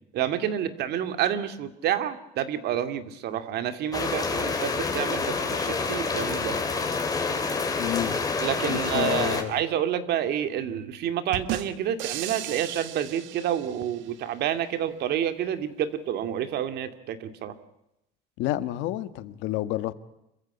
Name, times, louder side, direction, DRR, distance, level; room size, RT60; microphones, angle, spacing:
voice 1, 0.1-6.6 8.4-17.5, right 10 dB, 60° right, 2.3 m, -29 dB
sound 1, 3.9-9.4, left 4 dB, 20° left, 3.3 m, -28 dB
voice 2, 7.8-8.2 8.7-9.6 18.4-19.9, left 14 dB, 80° left, 1.6 m, -29 dB
sound 2, 11.3-14.1, right 13 dB, 85° right, 1.6 m, -36 dB
27.5 x 15.0 x 9.7 m
cardioid pair, 155°, 19 cm